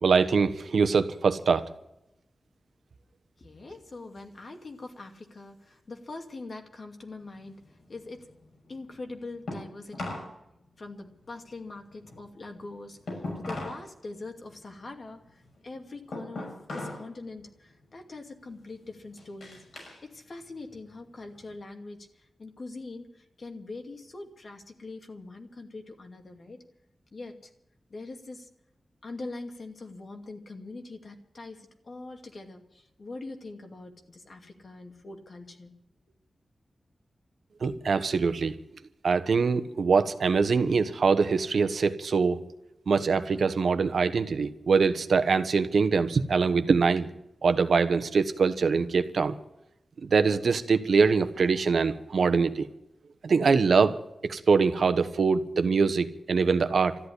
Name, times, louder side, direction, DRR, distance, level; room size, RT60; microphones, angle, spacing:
voice 1, 0.0-1.6 37.6-38.5 39.0-42.4 42.9-47.1 47.4-49.3 50.0-52.7 53.2-54.0 54.2-57.0, right 5 dB, 80° right, 10 dB, 1.1 m, -23 dB
voice 2, 3.4-8.3 8.6-10.1 10.8-19.6 20.0-26.6 27.1-27.5 27.9-28.5 29.0-35.7, left 3 dB, 55° left, 4 dB, 2.4 m, -43 dB
sound 1, 7.2-10.4 10.7-13.9 14.2-17.1 17.5-17.9 18.4-20.0 20.4-21.6, left 2 dB, 80° left, 6.2 m, -40 dB
13.5 x 11.0 x 9.8 m, 0.83 s
wide cardioid pair, 110°, 0 cm